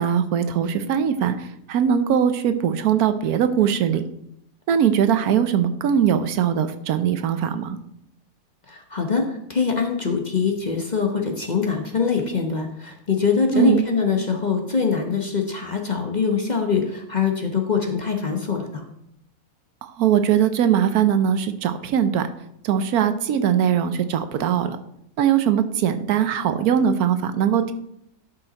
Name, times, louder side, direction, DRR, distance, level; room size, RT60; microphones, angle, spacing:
voice 1, 0.0-4.0 4.7-7.8 13.5-13.9 19.8-22.3 22.6-24.8 25.2-27.7, right 8 dB, 75° right, 10 dB, 1.1 m, -21 dB
voice 2, 8.7-18.8, left 5 dB, 35° left, 2 dB, 0.9 m, -23 dB
11.5 x 5.8 x 3.9 m, 0.76 s
omnidirectional pair, 1.7 m